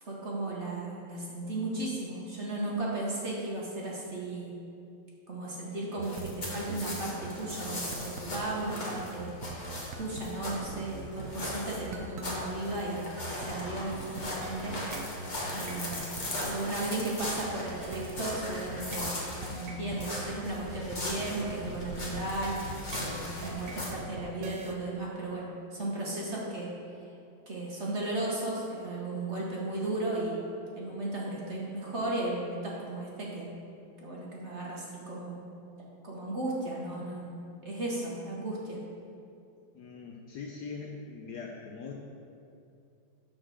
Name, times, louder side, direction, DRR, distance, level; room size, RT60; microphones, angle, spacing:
voice 1, 0.0-4.5 5.3-9.3 10.0-13.0 13.3-14.7 15.5-16.0 16.5-19.1 19.5-26.7 27.5-30.4 30.8-33.5 34.0-35.4 36.0-38.8, right 2 dB, 40° right, -4 dB, 1.3 m, -35 dB
sound 1, 6.0-23.9, left 1 dB, 25° left, 1.2 m, -39 dB
sound 2, 6.0-24.7, right 3 dB, 75° right, 0.7 m, -43 dB
voice 2, 39.7-41.9, left 5 dB, 70° left, 0 dB, 1.0 m, -41 dB
8.7 x 4.4 x 6.2 m, 2.6 s
omnidirectional pair, 2.2 m